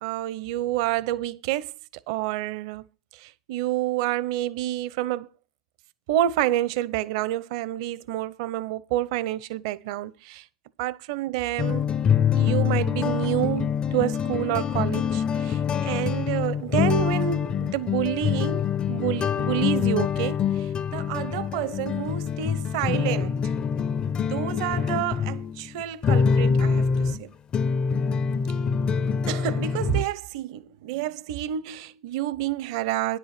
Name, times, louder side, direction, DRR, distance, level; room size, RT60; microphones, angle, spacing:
voice 1, 0.0-1.7 2.1-2.9 3.2-5.3 6.1-10.4 10.8-11.8 12.3-20.4 20.9-23.4 24.2-27.3 29.3-33.2, right 13 dB, 60° right, 0.8 m, -28 dB
sound 1, 11.6-27.2 27.5-30.0, left 7 dB, 30° left, 0.6 m, -25 dB
10.0 x 8.0 x 6.0 m
hypercardioid pair, 100°, 3 cm